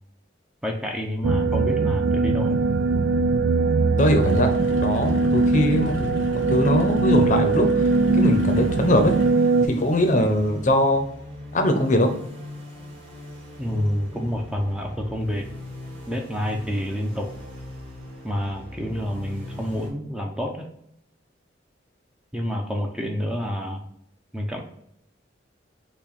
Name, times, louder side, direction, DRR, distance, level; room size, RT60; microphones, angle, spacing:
voice 1, 0.6-2.6 13.6-15.5 16.1-17.3 18.2-20.7 22.3-23.9 24.3-24.6, equal, 5° right, 1 dB, 0.5 m, -28 dB
sound 1, 1.2-9.7, right 3 dB, 75° right, 0.4 m, -21 dB
voice 2, 4.0-4.5 4.8-5.9 6.5-11.0 11.5-12.1, left 1 dB, 40° left, 5 dB, 0.7 m, -21 dB
sound 2, 4.2-9.3, left 1 dB, 80° left, 0.7 m, -33 dB
sound 3, 7.0-19.9, left 1 dB, 30° right, 1.4 m, -40 dB
5.8 x 2.3 x 4.0 m, 0.72 s
head